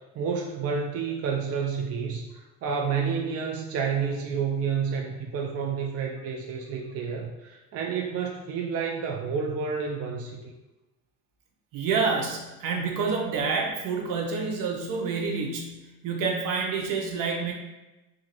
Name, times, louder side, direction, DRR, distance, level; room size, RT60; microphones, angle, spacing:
voice 1, 0.2-2.3 2.6-10.5, right 6 dB, 45° right, 0 dB, 0.4 m, -29 dB
voice 2, 11.7-17.5, right 5 dB, 75° right, 0 dB, 0.8 m, -28 dB
2.9 x 2.5 x 2.9 m, 1.1 s
cardioid pair, 105°, 33 cm